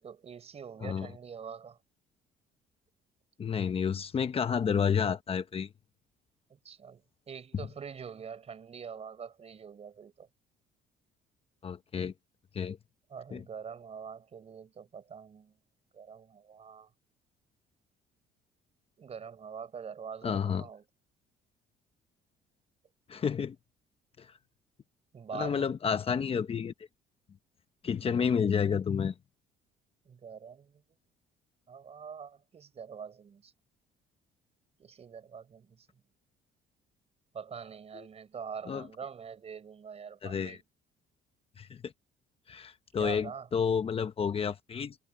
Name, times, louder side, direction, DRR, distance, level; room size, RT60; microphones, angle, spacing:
voice 1, 0.0-1.8 6.5-7.0 7.3-10.3 13.1-15.5 15.9-16.9 19.0-20.8 25.1-25.7 30.0-30.8 31.7-33.5 34.8-35.9 37.3-40.6 43.0-43.5, right 6 dB, 40° right, 4.2 m, -44 dB
voice 2, 3.4-5.7 11.6-12.1 12.5-12.8 13.3-13.4 20.2-20.7 23.1-23.5 24.2-24.3 25.3-26.7 27.8-29.1 37.9-38.0 38.7-38.9 40.2-40.6 41.6-41.9 42.5-45.0, left 7 dB, 35° left, 1.1 m, -30 dB
cardioid pair, 110°, 17 cm